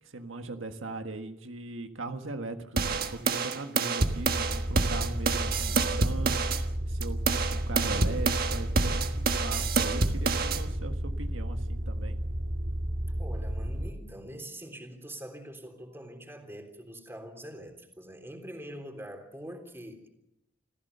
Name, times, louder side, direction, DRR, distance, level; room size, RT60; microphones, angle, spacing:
voice 1, 0.0-12.2, right 2 dB, 85° right, 6 dB, 1.6 m, -39 dB
sound 1, 2.8-6.6 7.0-10.6, right 4 dB, 50° right, 1.5 m, -28 dB
sound 2, 4.2-13.9, equal, 65° right, 2.9 m, -32 dB
voice 2, 13.2-20.1, right 1 dB, 10° right, 4 dB, 3.4 m, -44 dB
27.0 x 15.5 x 6.8 m, 0.80 s
head